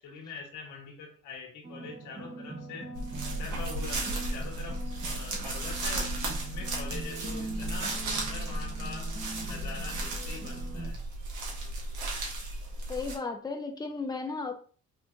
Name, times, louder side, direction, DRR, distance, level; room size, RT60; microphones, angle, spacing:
voice 1, 0.0-2.9 3.3-9.1 9.4-11.0, left 4 dB, 85° left, 1.5 m, -43 dB
sound 1, 1.6-10.9, right 3 dB, 20° right, 1.0 m, -42 dB
sound 2, 2.9-13.1, right 2 dB, 90° right, 1.5 m, -35 dB
voice 2, 12.9-14.5, left 4 dB, 15° left, 0.8 m, -34 dB
5.5 x 3.3 x 2.7 m
cardioid pair, 90°, 30 cm